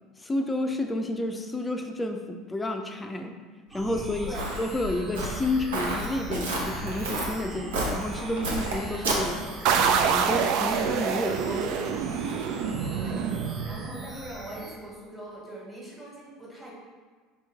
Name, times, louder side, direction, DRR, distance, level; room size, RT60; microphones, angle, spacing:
voice 1, 0.2-3.4 3.7-9.4 9.8-12.0, left 1 dB, 15° left, 5 dB, 0.4 m, -30 dB
sound 1, 3.7-14.8, right 2 dB, 30° right, 0.7 m, -42 dB
Walk footsteps, 3.8-10.0, right 1 dB, 85° right, 0.7 m, -32 dB
sound 2, 9.7-14.2, right 7 dB, 65° right, 0.3 m, -26 dB
voice 2, 12.9-16.7, right 1 dB, 15° right, -4 dB, 1.5 m, -42 dB
4.6 x 3.0 x 3.5 m, 1.4 s
hypercardioid pair, 80°, 0 cm